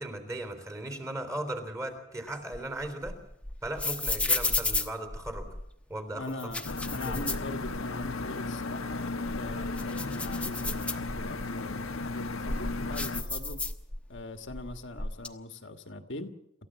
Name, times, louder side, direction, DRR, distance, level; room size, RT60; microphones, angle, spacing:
voice 1, 0.0-3.2 3.6-5.5 5.9-6.2 7.0-7.2, right 1 dB, 15° right, 7 dB, 3.6 m, -37 dB
sound 1, 2.3-5.7 6.3-8.1 8.5-8.6 9.1-11.5 12.0-14.2 14.5-15.3, left 2 dB, 5° left, 1.1 m, -33 dB
voice 2, 6.1-13.6 14.1-16.3, left 2 dB, 60° left, 6 dB, 1.6 m, -41 dB
sound 2, 6.6-13.2, left 3 dB, 80° left, 1.4 m, -35 dB
27.5 x 14.5 x 7.5 m, 0.83 s
head